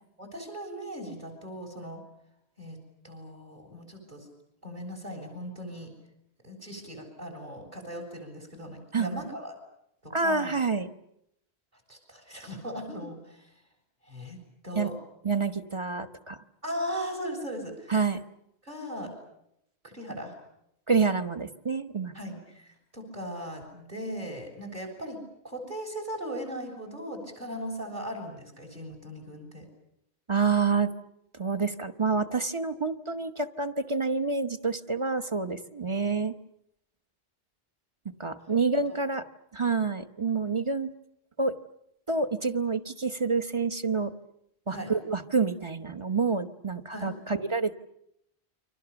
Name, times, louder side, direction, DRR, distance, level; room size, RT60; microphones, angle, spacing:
voice 1, 0.2-2.0 2.6-2.8 3.0-4.3 4.6-5.9 6.4-9.5 10.0-10.5 11.9-13.5 14.0-14.9 16.6-18.0 18.6-19.1 19.8-20.4 22.1-25.2 25.4-29.7 38.9-39.0 44.7-44.9 46.9-47.1, equal, 50° right, 4 dB, 7.3 m, -38 dB
voice 2, 10.1-10.9 14.7-14.9 15.2-16.4 17.9-18.2 20.9-22.1 30.3-30.9 31.3-36.3 38.2-39.2 39.5-40.9 41.4-41.5 42.1-44.1 44.7-47.7, right 4 dB, 30° right, 7 dB, 1.1 m, -28 dB
29.5 x 24.5 x 7.1 m, 0.78 s
omnidirectional pair, 1.1 m